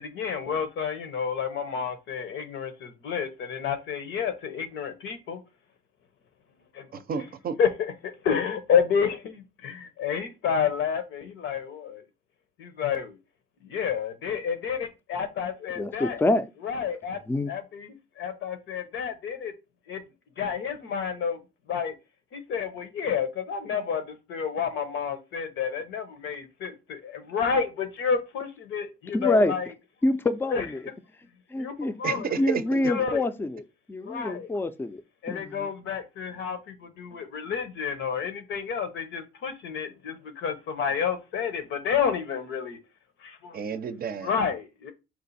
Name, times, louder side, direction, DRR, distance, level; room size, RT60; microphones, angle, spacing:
voice 1, 0.0-5.4 6.7-6.9 7.6-12.0 12.6-13.2 13.6-16.2 16.6-17.2 17.5-19.5 19.9-20.0 20.4-21.4 21.7-21.9 22.3-29.7 30.5-30.7 31.6-31.7 32.0-32.3 32.9-33.2 34.0-34.5 35.2-42.8 43.2-43.6 44.2-44.9, left 7 dB, 80° left, 0.9 m, -30 dB
voice 2, 6.9-7.6 32.0-32.8 43.5-44.3, right 7 dB, 50° right, 0.5 m, -31 dB
voice 3, 15.8-16.4 17.3-17.5 29.1-29.5 30.0-30.8 31.5-35.0 35.3-35.7, left 2 dB, 10° left, 0.4 m, -26 dB
4.4 x 2.5 x 4.0 m
cardioid pair, 90°, 20 cm